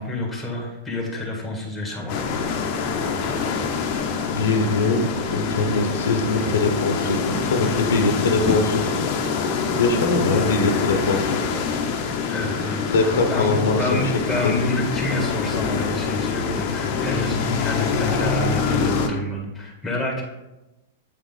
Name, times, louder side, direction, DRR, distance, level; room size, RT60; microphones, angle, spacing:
voice 1, 0.0-2.4 10.2-10.4 12.3-20.2, left 2 dB, 5° left, -1 dB, 1.8 m, -28 dB
sound 1, 2.1-19.1, left 5 dB, 50° left, 0.8 m, -25 dB
voice 2, 4.3-8.9 9.8-11.5 12.9-14.5, left 3 dB, 80° left, 5 dB, 0.9 m, -22 dB
8.1 x 3.7 x 3.8 m, 1.0 s
hypercardioid pair, 120°, 0 cm